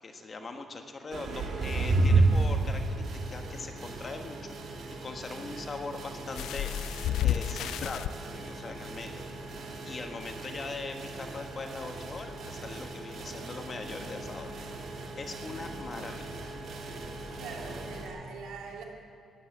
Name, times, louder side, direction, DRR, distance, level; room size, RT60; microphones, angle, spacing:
voice 1, 0.0-6.7 7.2-9.2 9.8-14.7 15.2-16.5, left 3 dB, 40° left, 5 dB, 1.4 m, -41 dB
sound 1, 1.1-18.1, right 3 dB, 60° right, 1.9 m, -33 dB
sound 2, 6.3-8.1 9.1-9.2 9.6-9.7, left 12 dB, 80° left, 0.3 m, -30 dB
voice 2, 17.4-18.8, right 5 dB, 80° right, -1 dB, 2.7 m, -42 dB
14.5 x 10.5 x 7.3 m, 2.4 s
cardioid pair, 90°, 0 cm